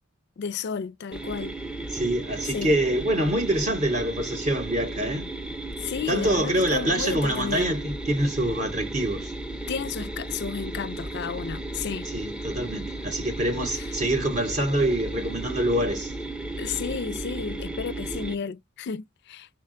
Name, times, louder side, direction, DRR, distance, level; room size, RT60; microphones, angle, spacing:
voice 1, 0.4-1.6 2.5-2.7 5.8-7.7 9.7-12.1 13.7-13.9 16.6-19.5, left 6 dB, 50° left, 0.4 m, -32 dB
sound 1, 1.1-18.4, right 2 dB, 5° right, 0.5 m, -34 dB
voice 2, 1.9-5.3 6.1-9.3 12.1-16.1, right 1 dB, 35° right, 0.7 m, -25 dB
3.9 x 2.2 x 3.7 m
head